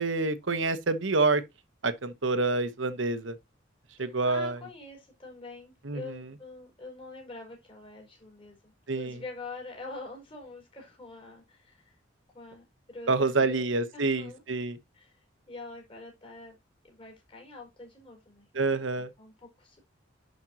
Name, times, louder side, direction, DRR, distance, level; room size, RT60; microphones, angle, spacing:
voice 1, 0.0-1.4 1.8-3.4 4.0-4.6 5.8-6.2 8.9-9.2 13.1-14.8 18.5-19.1, right 3 dB, 70° right, 1.1 m, -27 dB
voice 2, 4.0-12.0 12.3-13.7 13.9-14.4 14.9-16.6 16.8-19.8, left 3 dB, 30° left, 4.9 m, -45 dB
11.0 x 5.3 x 2.9 m
head